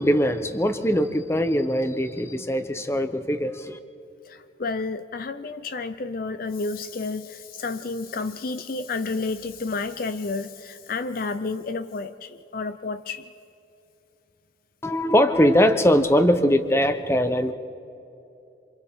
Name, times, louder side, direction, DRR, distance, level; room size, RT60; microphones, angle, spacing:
voice 1, 0.0-3.8 14.8-17.5, equal, 15° left, 9 dB, 0.8 m, -21 dB
voice 2, 4.2-13.2, left 3 dB, 45° left, 11 dB, 0.5 m, -31 dB
27.0 x 26.5 x 3.7 m, 2.8 s
head